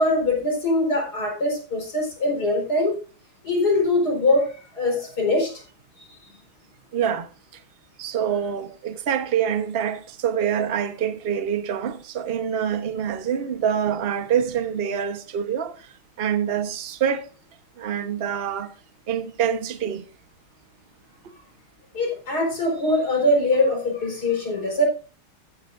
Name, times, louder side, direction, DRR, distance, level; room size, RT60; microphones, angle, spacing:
voice 1, 0.0-3.0 3.4-5.6 6.0-6.4 21.9-24.8, left 1 dB, 45° left, 5.1 m, -22 dB
voice 2, 6.9-7.3 8.0-15.9 16.2-17.3 17.8-18.7 19.1-20.0, right 8 dB, 40° right, 0.9 m, -25 dB
15.0 x 10.0 x 2.6 m
omnidirectional pair, 2.3 m